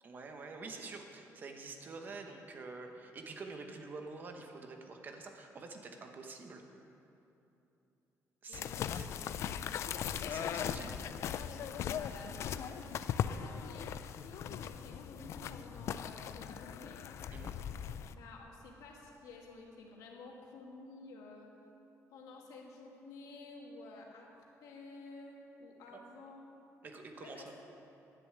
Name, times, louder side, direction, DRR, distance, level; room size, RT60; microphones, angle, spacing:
voice 1, 0.0-6.6 8.4-8.7 8.9-9.1 10.3-10.9 17.3-17.6 25.9-26.0 26.8-27.5, right 3 dB, 30° right, 4 dB, 1.0 m, -47 dB
voice 2, 8.5-12.9 13.2-17.0 18.1-21.5 22.1-24.3 24.6-26.5 27.2-27.5, left 3 dB, 85° left, -1 dB, 1.9 m, -52 dB
sound 1, 8.5-18.1, left 9 dB, 55° left, 0.3 m, -39 dB
10.5 x 7.0 x 8.2 m, 2.9 s
cardioid pair, 175°, 6 cm